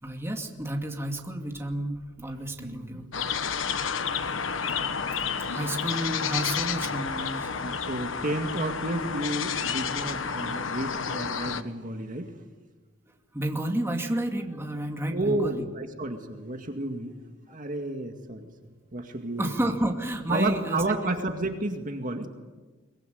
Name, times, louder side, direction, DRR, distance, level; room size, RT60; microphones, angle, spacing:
voice 1, 0.0-3.1 5.5-7.5 13.3-15.7 19.4-20.8, right 1 dB, 15° right, 3 dB, 2.4 m, -31 dB
voice 2, 2.6-3.0 7.5-12.3 15.1-17.1 17.5-18.5 18.9-19.5 20.3-22.3, right 2 dB, 40° right, 5 dB, 2.1 m, -31 dB
sound 1, 3.1-11.6, left 6 dB, 80° left, 1.3 m, -30 dB
23.0 x 22.0 x 9.4 m, 1.3 s
head